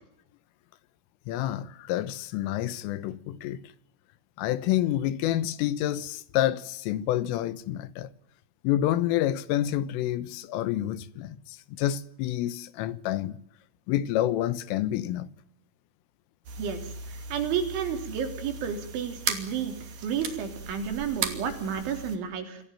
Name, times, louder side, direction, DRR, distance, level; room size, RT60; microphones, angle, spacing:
voice 1, 1.3-3.6 4.4-8.1 8.6-13.4 13.9-15.3, left 13 dB, 75° left, 3.6 m, -28 dB
sound 1, 16.5-22.2, right 5 dB, 50° right, 3.7 m, -37 dB
voice 2, 17.3-19.7 20.0-22.6, right 7 dB, 65° right, 5.7 m, -31 dB
27.0 x 16.5 x 8.9 m
omnidirectional pair, 6.0 m